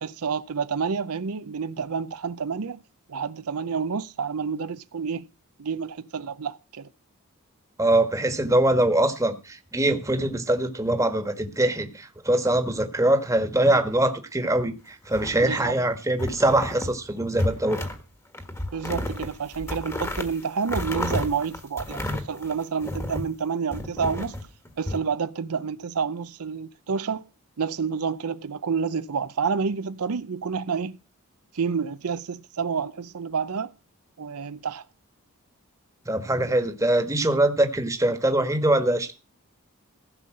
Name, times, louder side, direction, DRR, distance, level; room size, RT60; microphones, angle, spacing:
voice 1, 0.0-2.8 3.1-5.3 5.6-6.9 15.4-15.7 18.7-24.4 24.8-27.3 27.6-30.9 31.5-33.7 34.2-34.8, right 6 dB, 80° right, 0.6 m, -29 dB
voice 2, 7.8-17.8 36.0-39.1, right 1 dB, 15° right, 1.4 m, -23 dB
sound 1, 15.0-15.8 16.2-17.0 17.3-18.0 18.3-23.3 23.7-25.0, left 1 dB, 10° left, 1.4 m, -32 dB
15.5 x 5.5 x 7.7 m
head